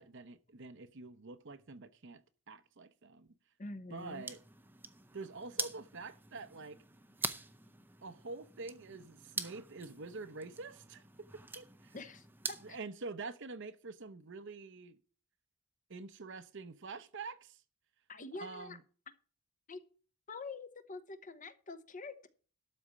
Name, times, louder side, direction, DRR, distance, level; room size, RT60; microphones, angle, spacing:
voice 1, 0.0-3.3 3.9-4.4 5.1-6.8 8.0-12.0 12.6-15.0 15.9-17.6 18.3-18.8, right 3 dB, 55° right, 0.8 m, -46 dB
voice 2, 3.6-4.2 11.9-12.6 18.1-18.8 19.7-19.8 20.3-22.3, left 3 dB, 35° left, 0.9 m, -46 dB
sound 1, 4.0-12.8, right 3 dB, 10° right, 0.6 m, -45 dB
12.5 x 4.3 x 8.4 m
head